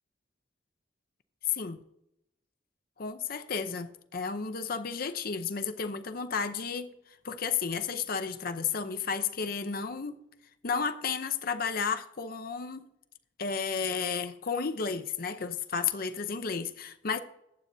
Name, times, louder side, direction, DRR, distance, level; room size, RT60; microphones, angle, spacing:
voice 1, 1.5-1.8 3.0-6.9 7.2-10.2 10.6-12.9 13.4-17.2, left 6 dB, 50° left, 0.7 m, -32 dB
14.5 x 8.9 x 2.7 m
head